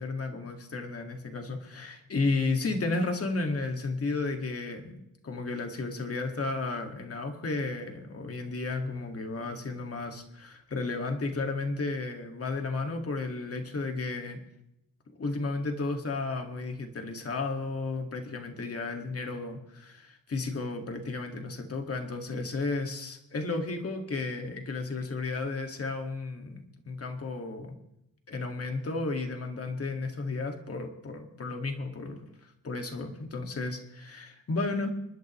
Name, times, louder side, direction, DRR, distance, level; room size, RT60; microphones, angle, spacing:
voice 1, 0.0-14.4 15.2-27.8 28.3-34.9, left 3 dB, 40° left, 4 dB, 1.9 m, -33 dB
27.5 x 12.0 x 3.1 m, 0.83 s
wide cardioid pair, 165°, 34 cm